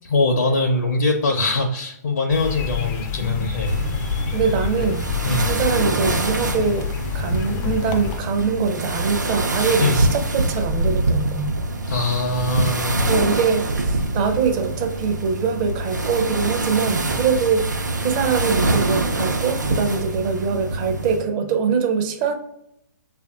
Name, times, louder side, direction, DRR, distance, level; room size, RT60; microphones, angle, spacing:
voice 1, 0.0-3.8 5.2-5.5 9.8-10.0 11.9-13.1, left 2 dB, 60° left, 2 dB, 0.6 m, -22 dB
sound 1, 2.3-8.2, left 8 dB, 20° left, 0.4 m, -28 dB
sound 2, 3.7-21.2, right 2 dB, 75° right, 0.7 m, -24 dB
voice 2, 4.3-5.0 5.5-6.8 7.1-11.5 13.1-17.6 18.0-22.3, right 5 dB, 30° right, 5 dB, 0.5 m, -23 dB
6.6 x 2.5 x 2.4 m, 0.79 s
figure-of-eight pair, 120°, 10 cm